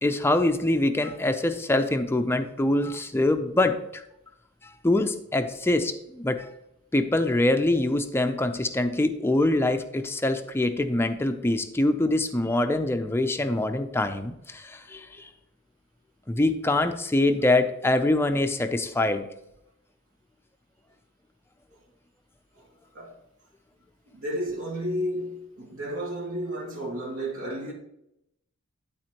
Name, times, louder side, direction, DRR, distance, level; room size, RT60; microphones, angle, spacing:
voice 1, 0.0-4.0 4.6-6.5 6.9-15.3 16.3-19.2, left 2 dB, 10° left, 0.5 m, -24 dB
voice 2, 24.1-27.7, equal, 70° right, 2.3 m, -32 dB
11.5 x 4.2 x 3.0 m
head